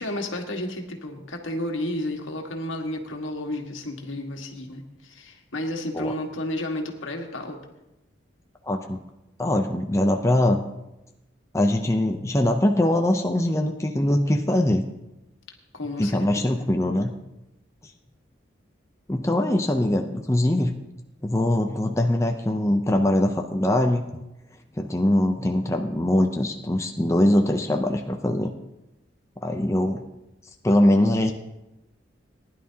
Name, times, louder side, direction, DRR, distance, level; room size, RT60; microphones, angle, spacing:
voice 1, 0.0-7.6 15.7-16.7, left 1 dB, 85° left, 2 dB, 1.6 m, -32 dB
voice 2, 8.7-9.0 9.4-10.6 11.5-14.8 16.0-17.1 19.1-20.7 21.2-24.1 24.8-28.5 29.4-30.0 30.6-31.3, left 1 dB, 15° left, 3 dB, 0.6 m, -22 dB
19.5 x 10.5 x 2.8 m, 0.93 s
head